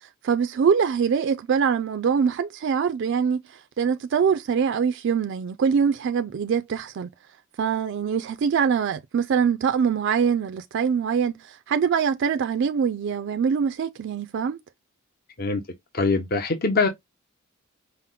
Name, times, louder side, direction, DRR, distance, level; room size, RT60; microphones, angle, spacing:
voice 1, 0.0-7.1 7.6-14.6, right 6 dB, 60° right, 0.3 m, -24 dB
voice 2, 15.9-16.9, left 3 dB, 45° left, 0.6 m, -22 dB
5.7 x 2.0 x 3.6 m
head